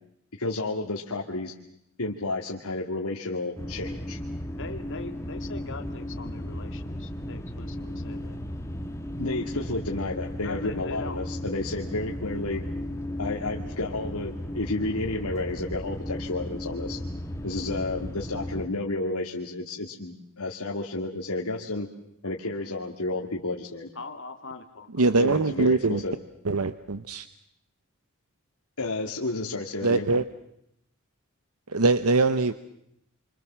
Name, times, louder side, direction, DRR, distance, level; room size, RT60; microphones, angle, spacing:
voice 1, 0.4-1.5 2.0-4.2 9.2-12.6 13.2-17.0 17.4-21.9 22.2-23.9 25.1-26.1 28.8-30.1, left 2 dB, 85° left, 0 dB, 2.2 m, -31 dB
sound 1, 3.6-18.7, left 1 dB, 15° left, 2.1 m, -35 dB
voice 2, 4.6-8.4 10.4-11.3 24.0-25.0, left 3 dB, 60° left, 8 dB, 2.2 m, -41 dB
voice 3, 25.0-26.0 26.4-27.3 29.8-30.2 31.7-32.5, right 3 dB, 85° right, 12 dB, 1.0 m, -22 dB
29.0 x 25.0 x 7.5 m, 0.79 s
head